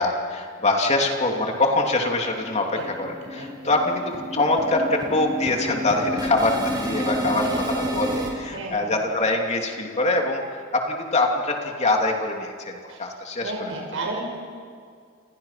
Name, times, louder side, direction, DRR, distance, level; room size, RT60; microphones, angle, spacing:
voice 1, 0.0-10.4 10.7-13.5, left 2 dB, 35° left, 1 dB, 3.0 m, -24 dB
sound 1, 1.0-1.1 1.5-1.6 1.9-2.1 2.3-8.3, equal, 20° right, 5.1 m, -30 dB
voice 2, 2.7-3.7 5.7-6.2 7.0-7.1 7.4-7.6 8.5-9.0 12.8-13.0 13.4-14.3, right 2 dB, 80° right, -1 dB, 5.7 m, -34 dB
29.0 x 28.5 x 5.9 m, 2.2 s
head